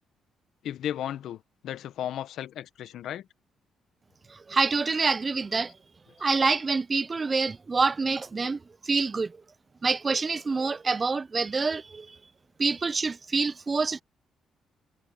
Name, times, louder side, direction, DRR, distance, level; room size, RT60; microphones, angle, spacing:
voice 1, 0.6-3.3, left 11 dB, 75° left, 0.9 m, -35 dB
voice 2, 4.3-5.7 6.2-9.4 9.8-12.1 12.6-14.0, right 4 dB, 30° right, 0.4 m, -26 dB
cardioid pair, 90°, 0 cm